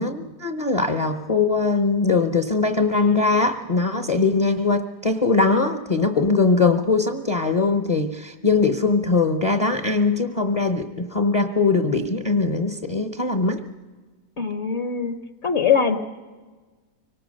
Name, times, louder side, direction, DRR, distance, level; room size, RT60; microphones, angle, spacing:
voice 1, 0.0-13.6, left 3 dB, 30° left, 7 dB, 0.7 m, -21 dB
voice 2, 14.4-15.2 15.4-16.0, left 7 dB, 50° left, 9 dB, 1.1 m, -21 dB
25.0 x 18.5 x 6.5 m, 1.4 s
omnidirectional pair, 1.7 m